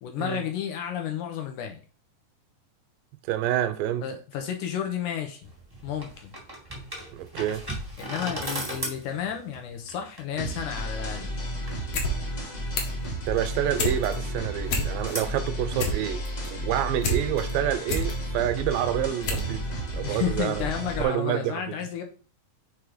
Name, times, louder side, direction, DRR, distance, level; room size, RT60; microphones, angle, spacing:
voice 1, 0.0-1.8 4.0-5.5 5.8-6.3 8.0-11.3 20.0-22.0, left 9 dB, 75° left, 2.0 m, -32 dB
voice 2, 3.3-4.0 7.1-7.6 13.3-19.7 19.9-20.6 21.0-21.7, right 11 dB, 80° right, 2.3 m, -28 dB
sound 1, 5.4-21.1, right 1 dB, 30° right, 0.4 m, -41 dB
sound 2, 10.4-21.0, equal, 40° left, 1.1 m, -33 dB
sound 3, 11.8-12.1 12.4-13.0 13.4-14.0 14.4-14.5 14.7-15.2 15.6-17.2 17.6-18.1 18.7-18.8 19.2-19.5 19.8-19.9, left 1 dB, 60° left, 1.9 m, -28 dB
6.0 x 3.3 x 4.9 m
omnidirectional pair, 4.0 m